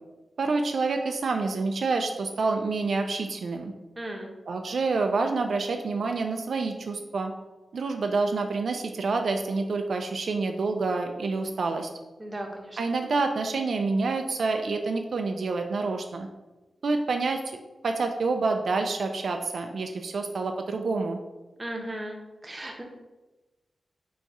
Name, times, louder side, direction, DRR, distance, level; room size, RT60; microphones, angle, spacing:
voice 1, 0.4-3.7 4.5-7.3 7.7-11.9 12.8-16.3 16.8-17.4 17.8-21.2, right 3 dB, 75° right, 4 dB, 0.3 m, -27 dB
voice 2, 4.0-4.3 12.2-12.8 21.6-22.2 22.4-22.8, right 1 dB, 25° right, 1 dB, 0.7 m, -36 dB
4.0 x 2.3 x 4.6 m, 1.1 s
wide cardioid pair, 80°, 0 cm